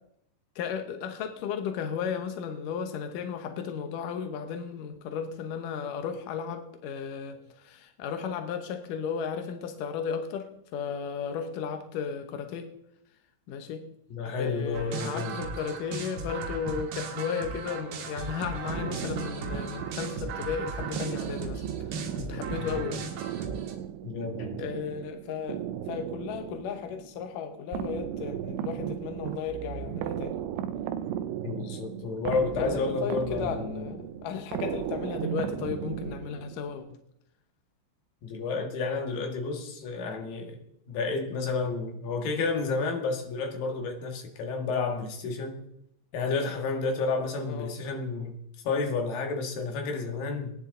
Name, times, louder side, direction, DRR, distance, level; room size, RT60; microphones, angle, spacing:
voice 1, 0.6-10.5 10.7-12.7 13.5-13.8 14.4-21.6 21.9-23.0 24.6-25.6 25.9-30.4 32.6-36.9 47.4-47.8, left 7 dB, 85° left, 6 dB, 1.9 m, -34 dB
voice 2, 14.1-15.3 22.6-22.8 24.0-24.6 31.4-33.8 38.2-40.6 40.9-45.6 46.1-48.3 48.6-50.5, left 4 dB, 60° left, 3 dB, 2.9 m, -31 dB
sound 1, 14.7-23.8, right 4 dB, 65° right, 3.3 m, -37 dB
sound 2, 18.7-36.8, right 10 dB, 80° right, 3.0 m, -36 dB
21.0 x 10.5 x 3.9 m, 0.76 s
omnidirectional pair, 5.5 m